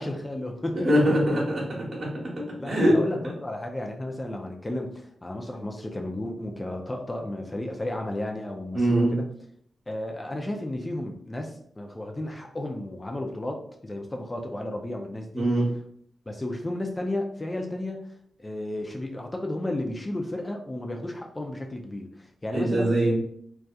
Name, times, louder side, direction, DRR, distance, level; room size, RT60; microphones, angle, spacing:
voice 1, 0.0-0.9 2.6-9.2 9.9-15.5 16.3-18.0 18.4-22.9, left 1 dB, 25° left, 2 dB, 0.4 m, -33 dB
voice 2, 0.8-3.4 8.7-9.1 15.3-15.7 22.5-23.1, right 1 dB, 50° right, -5 dB, 0.9 m, -23 dB
2.5 x 2.3 x 2.3 m, 0.67 s
supercardioid pair, 40°, 0 cm